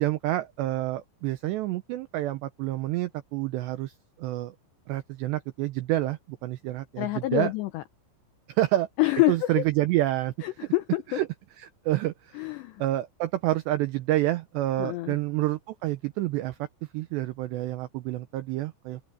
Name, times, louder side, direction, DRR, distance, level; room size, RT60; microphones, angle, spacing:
voice 1, 0.0-3.9 4.2-4.6 4.9-7.5 8.5-8.9 9.3-10.3 11.1-11.3 11.6-12.4 12.8-16.7 16.9-19.0, right 15 dB, 90° right, 2.4 m, -28 dB
voice 2, 7.0-7.8 9.0-9.6 10.4-11.2 12.3-12.8 14.8-15.2, left 19 dB, 85° left, 2.4 m, -27 dB
open air
omnidirectional pair, 6.0 m